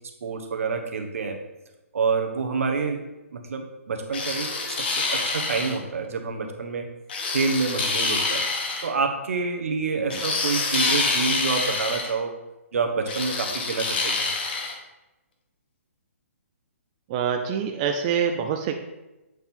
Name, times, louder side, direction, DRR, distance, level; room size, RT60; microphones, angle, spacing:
voice 1, 0.2-1.4 1.9-3.0 3.3-6.9 7.3-8.4 8.8-12.3 12.7-14.3, right 4 dB, 70° right, 4 dB, 1.1 m, -27 dB
sound 1, 4.1-5.8 7.1-8.9 10.1-12.1 13.1-14.7, left 3 dB, 45° left, 1.1 m, -26 dB
voice 2, 17.1-18.7, right 7 dB, 25° right, 4 dB, 0.3 m, -25 dB
7.8 x 4.4 x 3.6 m, 1.0 s
hypercardioid pair, 165°, 8 cm